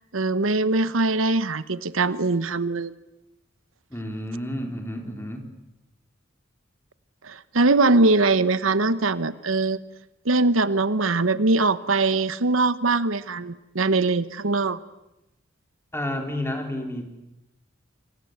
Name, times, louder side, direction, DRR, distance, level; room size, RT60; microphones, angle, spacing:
voice 1, 0.1-2.9 7.2-9.8 10.2-14.8, right 3 dB, 90° right, 14 dB, 1.1 m, -22 dB
voice 2, 3.9-5.5 15.9-17.1, left 1 dB, 15° left, 4 dB, 3.9 m, -30 dB
27.5 x 24.5 x 8.0 m, 0.91 s
head